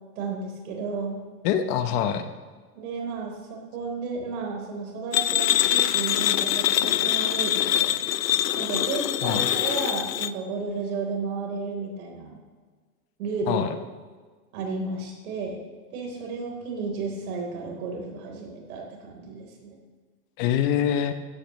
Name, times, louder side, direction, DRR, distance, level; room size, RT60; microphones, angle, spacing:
voice 1, 0.1-1.2 2.7-8.0 8.5-12.4 13.2-13.7 14.5-15.6 15.9-19.8, right 4 dB, 60° right, 0 dB, 4.2 m, -33 dB
voice 2, 1.4-2.3 9.2-9.5 13.5-13.7 20.4-21.1, left 9 dB, 35° left, 9 dB, 0.9 m, -24 dB
sound 1, 5.1-10.3, left 13 dB, 85° left, 0.7 m, -24 dB
15.5 x 12.5 x 3.2 m, 1.5 s
hypercardioid pair, 130°, 48 cm